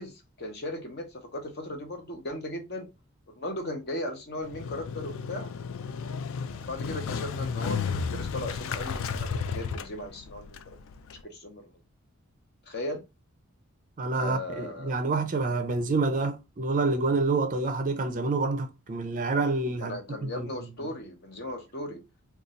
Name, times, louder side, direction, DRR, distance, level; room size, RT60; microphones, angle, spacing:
voice 1, 0.0-2.9 3.3-5.5 6.4-10.6 11.2-11.8 12.7-13.0 14.2-15.0 19.8-22.0, left 1 dB, 50° left, 0.8 m, -37 dB
Motorcycle, 4.4-11.2, left 5 dB, 65° left, 0.3 m, -33 dB
voice 2, 14.0-20.5, right 3 dB, 35° right, 0.4 m, -28 dB
2.6 x 2.3 x 3.9 m
head